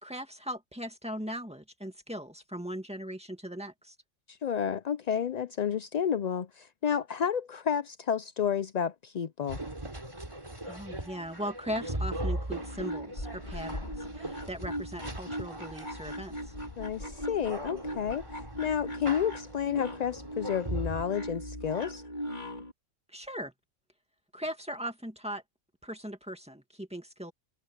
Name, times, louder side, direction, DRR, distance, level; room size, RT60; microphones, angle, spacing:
voice 1, 0.0-3.9 10.6-16.4 23.1-23.5 24.3-25.4 25.8-27.3, equal, 5° right, 2.1 m, -39 dB
voice 2, 4.3-9.6 16.8-22.0, left 8 dB, 75° left, 0.4 m, -31 dB
sound 1, 9.5-21.0, right 1 dB, 25° right, 2.9 m, -39 dB
sound 2, 12.5-22.7, equal, 35° left, 2.8 m, -40 dB
omnidirectional pair, 1.3 m